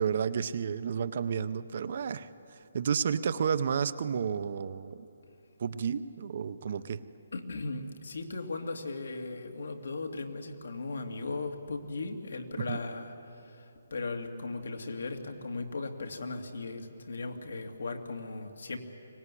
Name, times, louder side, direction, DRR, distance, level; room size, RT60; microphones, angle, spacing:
voice 1, 0.0-2.3 2.7-5.0 5.6-7.0 12.6-12.8, right 7 dB, 40° right, 13 dB, 0.6 m, -31 dB
voice 2, 7.3-18.8, left 3 dB, 80° left, 4 dB, 2.4 m, -37 dB
23.0 x 18.5 x 9.9 m, 2.8 s
hypercardioid pair, 175°, 0 cm